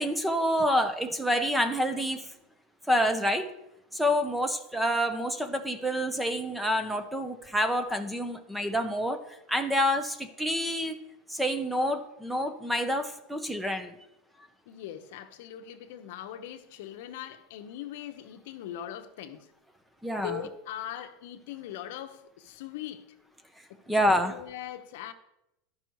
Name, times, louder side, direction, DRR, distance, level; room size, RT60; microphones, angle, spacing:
voice 1, 0.0-2.3 2.9-3.5 3.9-9.2 9.5-11.0 11.3-13.9 20.0-20.4 23.9-24.3, equal, 5° right, 0.6 m, -27 dB
voice 2, 14.7-19.5 20.2-23.1 23.7-25.1, left 11 dB, 70° left, 0.8 m, -41 dB
12.0 x 5.5 x 4.6 m
supercardioid pair, 155°, 0 cm